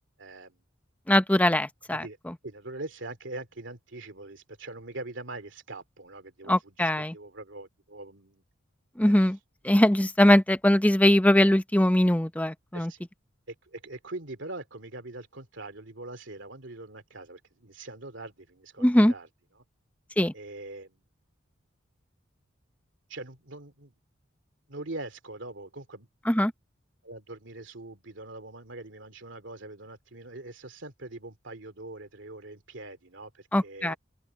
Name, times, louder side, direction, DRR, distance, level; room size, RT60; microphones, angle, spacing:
voice 1, 0.2-0.6 1.9-2.2 2.4-8.4 9.0-9.2 12.7-13.1 13.5-19.3 19.6-19.7 20.3-21.0 23.1-23.9 24.7-26.1 27.0-34.0, right 2 dB, 70° right, 2.7 m, -42 dB
voice 2, 1.1-2.0 6.5-7.1 9.0-9.4 9.6-12.9 18.8-19.1 20.2-20.3 26.3-26.5 33.5-33.9, left 1 dB, 10° left, 0.7 m, -21 dB
open air
head